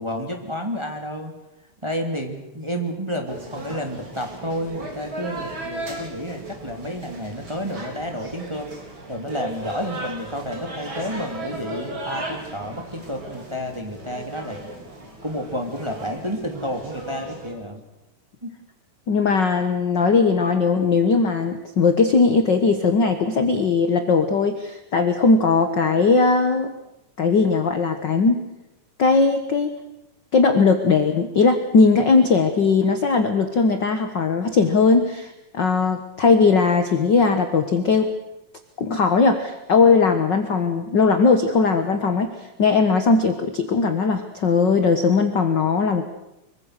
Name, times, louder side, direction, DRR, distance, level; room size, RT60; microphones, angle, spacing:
voice 1, 0.0-1.3 1.8-8.7 9.1-14.6 15.2-17.8 18.4-18.5, equal, 10° right, 3 dB, 2.4 m, -30 dB
sound 1, 3.3-17.5, right 1 dB, 35° right, 4.7 m, -36 dB
voice 2, 19.1-26.7 27.2-28.4 29.0-29.7 30.3-38.1 38.8-46.0, left 4 dB, 50° left, 7 dB, 1.5 m, -19 dB
25.0 x 23.5 x 6.6 m, 0.91 s
omnidirectional pair, 3.7 m